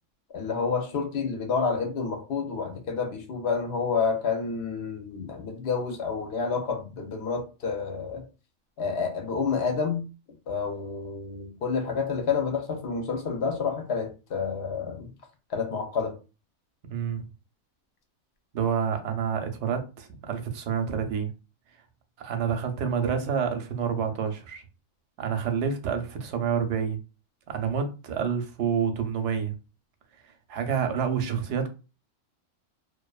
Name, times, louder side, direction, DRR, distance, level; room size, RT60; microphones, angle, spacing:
voice 1, 0.3-8.2 8.8-10.0 10.5-15.1 15.5-16.1, left 5 dB, 60° left, 0.8 m, -29 dB
voice 2, 16.9-17.2 18.5-21.3 22.2-24.6 25.2-27.0 27.5-29.5 30.2-31.7, right 7 dB, 65° right, 0.8 m, -28 dB
2.5 x 2.2 x 2.3 m
omnidirectional pair, 1.4 m